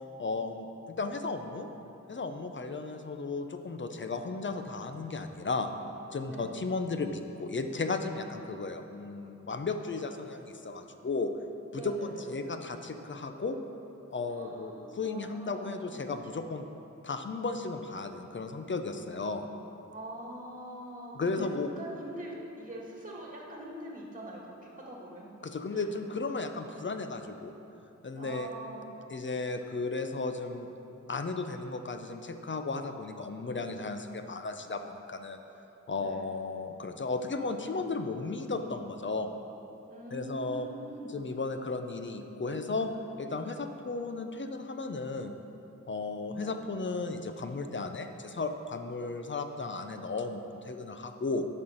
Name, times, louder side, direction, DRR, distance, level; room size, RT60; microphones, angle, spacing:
voice 1, 0.2-1.7 2.1-5.7 6.1-11.3 11.7-13.6 14.1-16.6 17.0-19.5 21.2-21.7 25.4-27.5 28.0-28.5 29.1-30.7 31.1-35.4 35.9-39.3 40.1-40.7 41.1-42.9 43.2-45.3 45.9-51.5, left 3 dB, 40° left, 7 dB, 0.6 m, -35 dB
voice 2, 11.7-12.3 14.3-15.8 19.9-21.5 21.8-25.3 25.7-26.0 28.1-28.9 36.0-36.2 39.9-41.2, right 1 dB, 25° right, -3 dB, 1.9 m, -43 dB
10.5 x 4.4 x 6.5 m, 2.9 s
wide cardioid pair, 85°, 30 cm